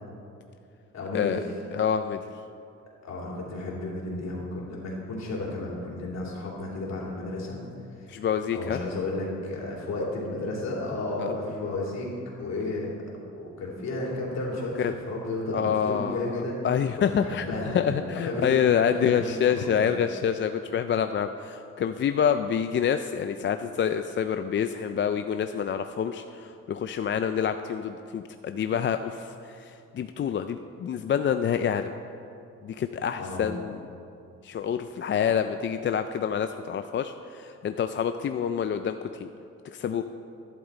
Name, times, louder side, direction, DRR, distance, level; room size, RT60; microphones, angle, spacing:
voice 1, 0.9-1.4 3.0-7.6 8.0-8.2 8.5-12.1 12.3-12.9 13.3-16.6 17.0-19.8 33.2-33.5, left 2 dB, 60° left, -3 dB, 3.2 m, -33 dB
voice 2, 1.7-2.2 8.1-8.8 11.2-11.3 14.8-14.9 15.5-16.2 16.6-17.5 17.7-31.9 32.6-33.7 34.4-39.3 39.7-40.0, left 8 dB, 40° left, 8 dB, 0.4 m, -27 dB
12.0 x 11.0 x 4.0 m, 2.6 s
cardioid pair, 90°, 30 cm